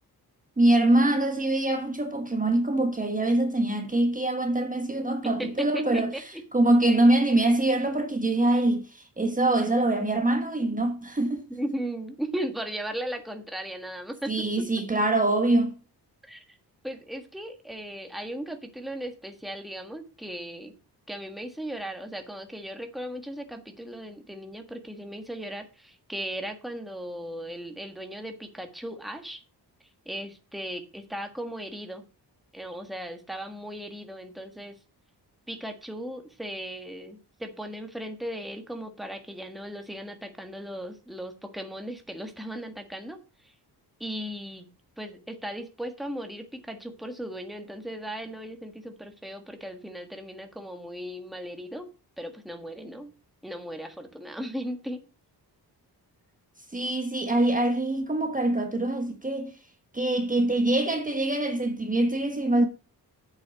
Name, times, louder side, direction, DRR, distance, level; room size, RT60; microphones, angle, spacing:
voice 1, 0.6-11.4 14.3-15.7 56.7-59.5 59.9-62.7, right 2 dB, 20° right, 1.4 m, -24 dB
voice 2, 5.2-6.2 8.5-8.6 11.5-14.5 16.2-16.6 16.8-20.8 21.1-29.4 30.0-32.1 32.5-34.8 35.5-43.2 43.4-43.5 44.0-51.8 52.2-53.1 53.4-55.0, right 1 dB, ahead, 1.6 m, -37 dB
8.4 x 7.2 x 5.1 m
wide cardioid pair, 110°, 40 cm